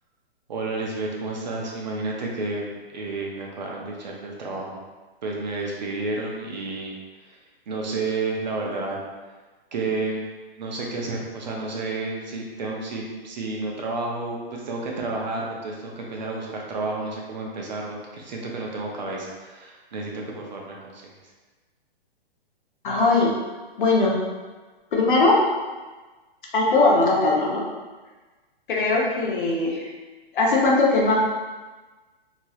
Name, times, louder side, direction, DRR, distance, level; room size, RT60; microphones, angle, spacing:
voice 1, 0.5-4.8 5.2-7.4 7.7-9.0 9.7-10.3 10.5-21.1, right 3 dB, 45° right, -1 dB, 0.5 m, -31 dB
voice 2, 22.8-23.3 23.8-24.2 24.9-25.4 26.5-27.6 28.7-29.9 30.3-31.2, left 2 dB, 55° left, -2 dB, 0.8 m, -20 dB
2.9 x 2.9 x 2.3 m, 1.3 s
hypercardioid pair, 170°, 31 cm